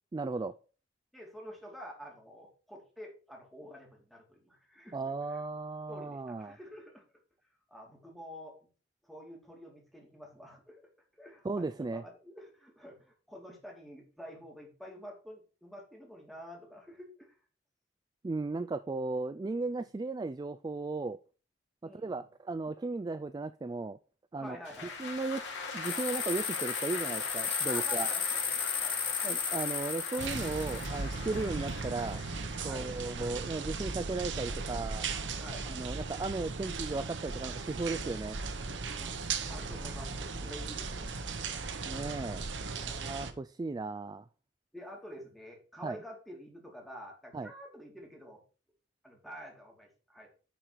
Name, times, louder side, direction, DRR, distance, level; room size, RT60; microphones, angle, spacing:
voice 1, 0.1-0.5 4.9-6.6 11.4-12.0 18.2-21.2 21.8-24.0 24.3-24.6 25.0-28.1 29.2-32.2 32.6-35.1 35.7-38.4 41.8-42.5 42.9-44.3 45.8-46.0 47.3-47.5, right 3 dB, 20° right, 13 dB, 0.3 m, -36 dB
voice 2, 1.1-5.0 5.3-5.4 5.9-7.0 7.7-8.6 9.0-17.4 19.6-19.7 21.8-22.3 24.4-25.0 27.7-28.4 28.8-29.0 31.2-31.5 32.6-32.9 35.4-35.7 39.0-41.0 42.7-43.1 44.7-48.4 49.0-50.3, equal, ahead, -1 dB, 2.6 m, -48 dB
sound 1, 24.6-37.1 37.5-39.6 40.1-41.8, left 4 dB, 85° left, 2.7 m, -43 dB
sound 2, 25.8-30.9, left 6 dB, 30° left, 1.4 m, -34 dB
sound 3, 30.2-43.3, right 4 dB, 80° right, 1.0 m, -37 dB
10.0 x 4.5 x 5.1 m, 0.38 s
head